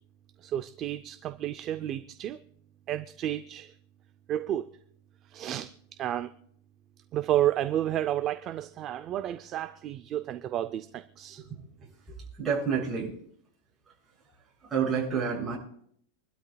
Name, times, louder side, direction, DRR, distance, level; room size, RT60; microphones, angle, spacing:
voice 1, 0.4-2.4 2.9-3.7 4.3-4.7 5.3-5.7 6.0-6.3 7.1-11.4, right 12 dB, 25° right, 10 dB, 0.5 m, -31 dB
voice 2, 12.1-13.1 14.6-15.6, right 6 dB, 10° right, -5 dB, 6.4 m, -29 dB
26.5 x 12.5 x 2.3 m, 0.65 s
supercardioid pair, 165°, 0 cm